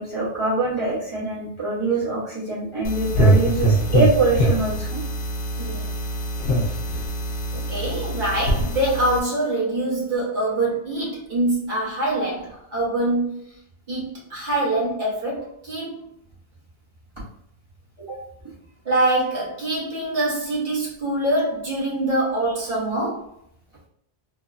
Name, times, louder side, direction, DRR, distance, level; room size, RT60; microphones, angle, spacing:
voice 1, 0.0-5.0 18.0-18.2, right 3 dB, 30° right, -9 dB, 0.9 m, -24 dB
sound 1, 2.8-9.2, right 1 dB, 65° left, 0.8 m, -23 dB
voice 2, 5.6-5.9 7.5-13.4 13.9-16.0 18.8-23.3, right 1 dB, 45° right, -6 dB, 1.2 m, -24 dB
3.1 x 2.2 x 2.4 m, 0.72 s
omnidirectional pair, 1.2 m